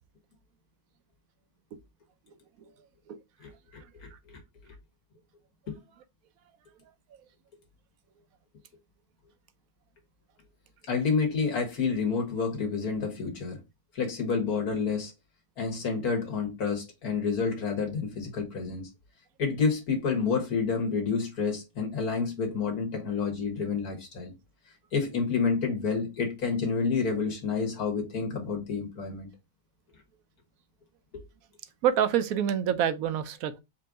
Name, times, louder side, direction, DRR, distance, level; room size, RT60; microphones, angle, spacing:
voice 1, 3.4-4.4 5.7-5.8 10.9-13.6 13.9-15.1 15.6-18.9 19.4-24.3 24.9-29.3 31.1-31.2, left 5 dB, 85° left, 1.8 m, -29 dB
voice 2, 31.8-33.6, right 9 dB, 75° right, 1.0 m, -26 dB
4.4 x 2.5 x 4.7 m
omnidirectional pair, 1.5 m